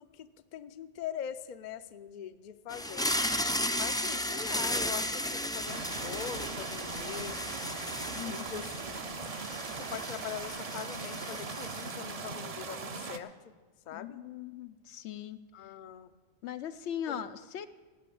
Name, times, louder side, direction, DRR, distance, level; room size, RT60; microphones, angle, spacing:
voice 1, 0.0-3.1 3.8-7.4 8.2-9.4 9.8-13.5 13.9-14.2 15.5-16.1 17.1-17.2, left 9 dB, 55° left, 12 dB, 0.6 m, -42 dB
sound 1, 2.7-12.2, left 1 dB, 5° left, 0.4 m, -35 dB
sound 2, 5.6-13.2, right 4 dB, 40° right, 0.6 m, -40 dB
voice 2, 8.1-8.6 13.9-15.4 16.4-17.7, left 9 dB, 80° left, 11 dB, 0.9 m, -39 dB
16.5 x 6.3 x 8.4 m, 1.3 s
omnidirectional pair, 1.1 m